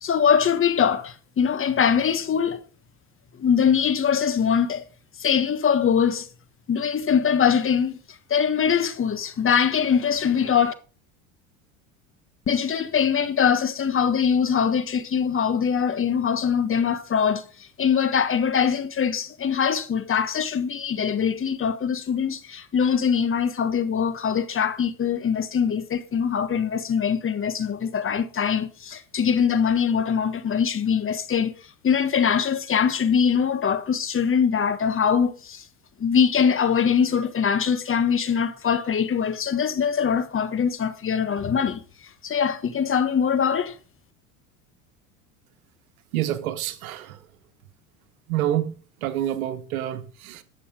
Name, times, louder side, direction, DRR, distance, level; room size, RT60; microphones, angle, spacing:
voice 1, 0.0-2.6 3.4-4.8 5.2-6.3 6.7-8.0 8.3-10.7 12.5-17.4 17.8-31.5 31.8-35.6 36.0-41.8 42.2-43.7, left 7 dB, 30° left, 1.4 m, -22 dB
voice 2, 46.1-47.2 48.3-48.7 49.0-50.4, right 12 dB, 85° right, 1.2 m, -27 dB
11.5 x 6.9 x 5.0 m
hypercardioid pair, 85°, 41 cm